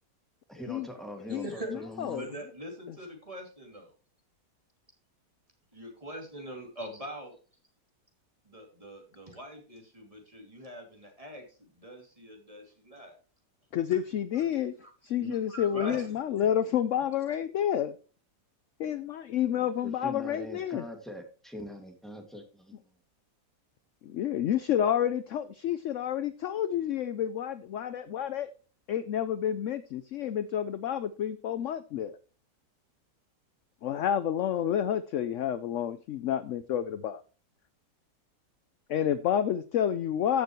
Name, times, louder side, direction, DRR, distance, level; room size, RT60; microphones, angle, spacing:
voice 1, 0.5-2.2 19.5-22.8, equal, ahead, 3 dB, 2.1 m, -42 dB
voice 2, 1.3-1.8 2.1-3.9 5.7-7.3 8.4-13.1 13.9-14.0 14.3-14.4 14.8-14.9 15.2-16.1 16.4-16.5, right 1 dB, 20° right, 2 dB, 2.8 m, -43 dB
voice 3, 13.7-14.7 15.0-17.9 18.8-20.8 24.0-28.5 28.9-32.2 33.8-37.2 38.9-40.4, left 10 dB, 65° left, 13 dB, 0.7 m, -29 dB
14.5 x 6.7 x 3.1 m, 0.38 s
omnidirectional pair, 1.8 m